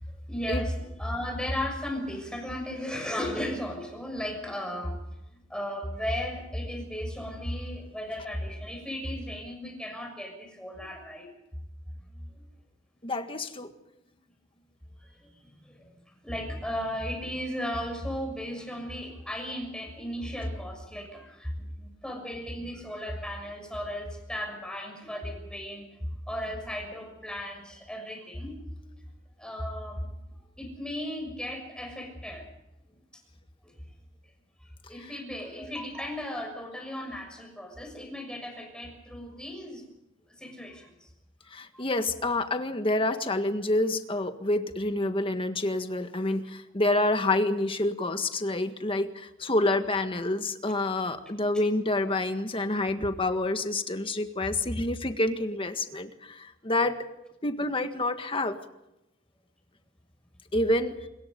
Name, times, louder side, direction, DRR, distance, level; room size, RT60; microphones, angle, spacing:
voice 1, 0.1-5.0 5.3-11.3 12.1-12.4 15.0-25.9 26.3-29.0 29.4-30.2 30.6-32.4 33.1-33.2 33.6-33.8 34.6-39.8 40.3-41.1 41.5-41.9 54.7-54.8, equal, 5° left, 3 dB, 6.3 m, -36 dB
voice 2, 13.0-13.7 35.0-35.2 41.5-57.0 57.4-58.6 60.5-61.0, left 2 dB, 30° left, 8 dB, 1.7 m, -28 dB
26.0 x 22.0 x 5.3 m, 0.91 s
head